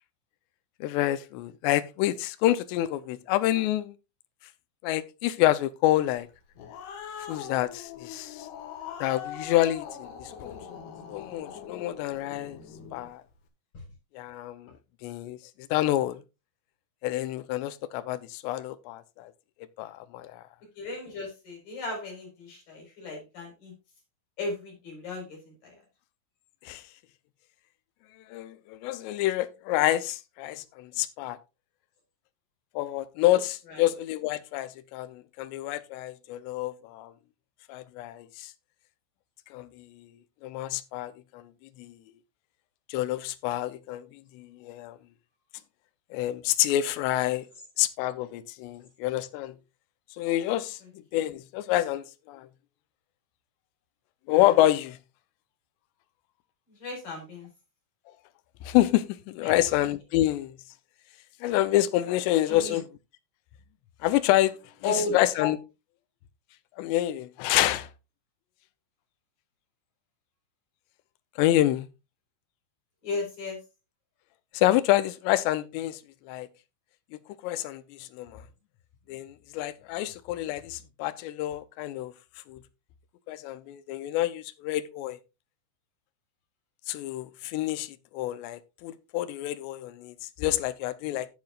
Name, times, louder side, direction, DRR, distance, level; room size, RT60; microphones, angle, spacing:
voice 1, 0.8-3.9 4.8-6.3 7.2-8.5 9.0-10.6 11.1-12.6 12.9-13.2 14.1-14.7 15.0-15.4 15.7-16.2 17.0-19.3 19.8-20.4 26.6-26.8 28.3-31.4 32.8-37.1 37.7-38.5 39.5-39.9 40.4-41.4 41.8-41.9 42.9-44.1 44.3-45.0 46.1-47.5 47.8-49.6 50.2-50.8 51.1-52.5 54.3-55.0 58.6-60.6 61.4-62.9 64.0-64.5 64.9-65.6 66.8-67.9 71.4-71.9 74.5-76.0 76.3-76.5 77.4-78.4 79.1-82.1 82.5-82.6 83.3-85.2 86.9-91.3, left 14 dB, 85° left, 2.6 m, -27 dB
Growling, 6.3-13.1, left 7 dB, 65° left, 3.3 m, -42 dB
voice 2, 20.8-23.7 24.4-25.4 25.6-25.7 33.7-33.8 56.8-57.5 59.4-59.5 62.5-62.8 64.8-65.1 73.0-73.6, left 3 dB, 45° left, 6.0 m, -35 dB
17.0 x 5.9 x 2.4 m
omnidirectional pair, 5.6 m